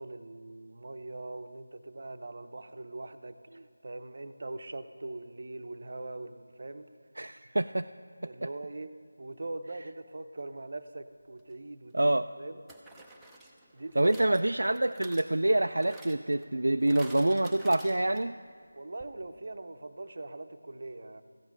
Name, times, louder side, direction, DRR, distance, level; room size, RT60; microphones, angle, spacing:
voice 1, 0.0-3.4 3.8-6.9 8.2-8.9 9.2-12.6 13.7-14.5 18.7-21.2, right 2 dB, 50° right, 10 dB, 0.7 m, -41 dB
voice 2, 7.2-7.9 8.2-8.5 11.9-12.3 14.0-18.4, right 1 dB, 70° right, 8 dB, 0.3 m, -26 dB
sound 1, 11.4-11.5 12.7-18.4 18.7-18.8 19.0-19.1, right 2 dB, ahead, 0.7 m, -52 dB
15.0 x 7.9 x 5.9 m, 2.1 s
figure-of-eight pair, 165°, 0 cm